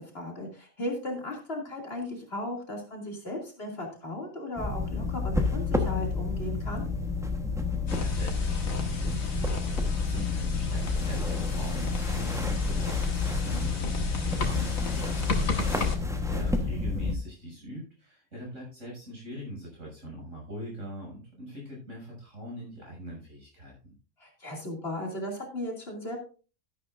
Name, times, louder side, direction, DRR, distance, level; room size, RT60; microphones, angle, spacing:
voice 1, 0.1-6.8 15.7-16.1 24.2-26.2, left 1 dB, 50° left, 0 dB, 2.8 m, -36 dB
sound 1, 4.6-17.1, left 4 dB, 5° right, 1.1 m, -30 dB
voice 2, 7.8-23.9, right 1 dB, 70° right, -2 dB, 7.5 m, -42 dB
sound 2, 7.9-16.0, left 3 dB, 85° left, 2.0 m, -32 dB
13.0 x 11.0 x 2.6 m, 0.36 s
omnidirectional pair, 1.4 m